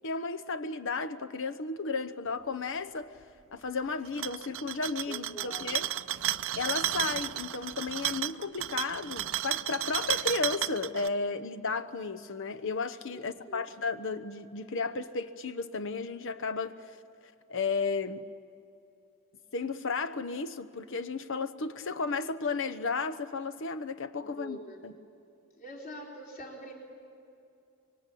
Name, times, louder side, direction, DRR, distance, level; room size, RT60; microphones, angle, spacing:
voice 1, 0.0-3.1 3.5-5.9 6.6-16.8 17.2-18.2 19.5-24.9, left 4 dB, 60° left, 0.9 m, -34 dB
sound 1, 4.1-11.1, right 12 dB, 65° right, 0.6 m, -33 dB
voice 2, 5.1-5.8 13.1-13.7 24.2-24.8 25.6-26.7, equal, 40° left, 3.8 m, -45 dB
25.0 x 23.5 x 8.4 m
head